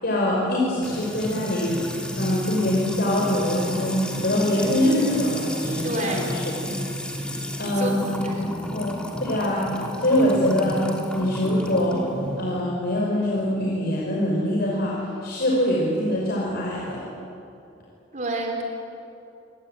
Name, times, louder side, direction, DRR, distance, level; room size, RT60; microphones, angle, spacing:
voice 1, 0.0-1.8 2.2-6.5 7.6-8.0 8.4-9.7 10.0-12.1 12.4-17.0, left 1 dB, 60° left, -4 dB, 5.5 m, -24 dB
Music / Water tap faucet / Trickle dribble, 0.8-12.6, equal, 5° left, 3.1 m, -31 dB
voice 2, 5.8-6.3 7.8-8.5 18.1-18.6, right 2 dB, 40° right, 1 dB, 3.9 m, -29 dB
27.5 x 22.0 x 9.2 m, 2.7 s
head